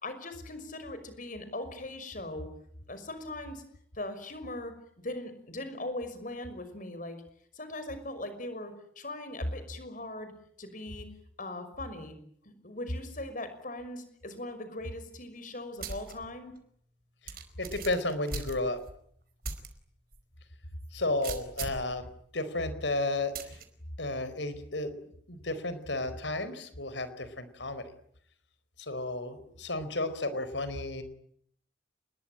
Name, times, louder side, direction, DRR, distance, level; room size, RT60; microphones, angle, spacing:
voice 1, 0.0-2.5 2.9-3.6 3.9-4.8 5.0-7.2 7.5-10.3 10.6-11.1 11.4-12.2 12.4-16.5, left 1 dB, 45° left, 10 dB, 6.0 m, -40 dB
sound 1, 15.8-16.1 16.6-16.7 17.3-18.9 19.4-19.7 20.1-20.2 21.2-21.9 23.3-23.6, right 4 dB, 55° right, 4.8 m, -38 dB
voice 2, 17.6-18.8 20.9-22.1 22.3-23.6 24.0-24.9 25.3-27.8 28.8-31.0, left 2 dB, 80° left, 13 dB, 4.6 m, -33 dB
29.0 x 22.0 x 9.0 m, 0.67 s
head